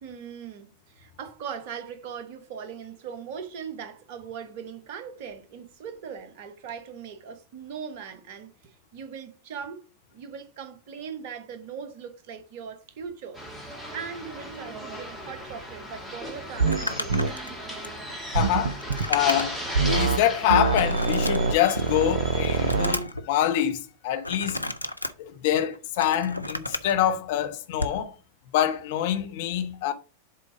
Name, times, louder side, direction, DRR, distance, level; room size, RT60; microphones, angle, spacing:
voice 1, 0.0-9.8 10.1-13.4 13.9-17.5, right 7 dB, 50° right, 1.2 m, -40 dB
sound 1, 13.3-23.0, equal, 5° right, 2.4 m, -37 dB
Crumpling crinkling, 16.6-19.7 20.1-20.2 20.8-21.9 22.3-23.2 24.2-25.1 25.7-26.9 27.7-28.0, left 1 dB, 85° left, 0.5 m, -33 dB
sound 2, 16.6-16.8 17.1-17.3 18.3-19.1 19.7-20.2 20.5-23.0, right 4 dB, 70° right, 0.5 m, -24 dB
voice 2, 18.3-19.6 19.9-24.6 25.2-28.1 28.5-29.9, left 11 dB, 50° left, 0.9 m, -25 dB
7.4 x 3.7 x 4.9 m
figure-of-eight pair, 90°, 0 cm